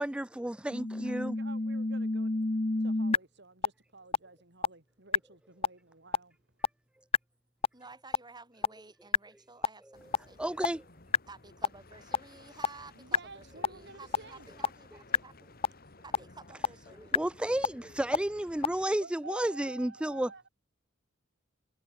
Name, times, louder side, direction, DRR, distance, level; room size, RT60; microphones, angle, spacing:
voice 1, 0.0-1.4 10.4-10.8 17.1-20.3, right 1 dB, 5° right, 0.3 m, -32 dB
sound 1, 0.7-3.2 3.6-3.7 4.1-4.2 4.6-4.7 5.1-5.2 5.6-5.7 6.1-6.2 6.6-6.7 7.1-7.2 7.6-7.7 8.1-8.2 8.6-8.7 9.1-9.2 9.6-9.7 10.1-10.2 10.6-10.7 11.1-11.2 11.6-11.7 12.1-12.2 12.6-12.7 13.1-13.2 13.6-13.7 14.1-14.2 14.6-14.7 15.1-15.2 15.6-15.7 16.1-16.2 16.6-16.7 17.1-17.2 17.6-17.7 18.1-18.2 18.6-18.7, left 4 dB, 30° left, 0.8 m, -26 dB
voice 2, 1.0-2.3 2.8-6.4 12.9-14.5 15.8-16.0 19.0-20.5, right 3 dB, 60° right, 5.0 m, -50 dB
voice 3, 7.7-10.7 11.3-15.7 16.0-17.2, right 3 dB, 20° right, 3.7 m, -53 dB
sound 2, 9.9-18.9, left 2 dB, 50° left, 2.8 m, -56 dB
head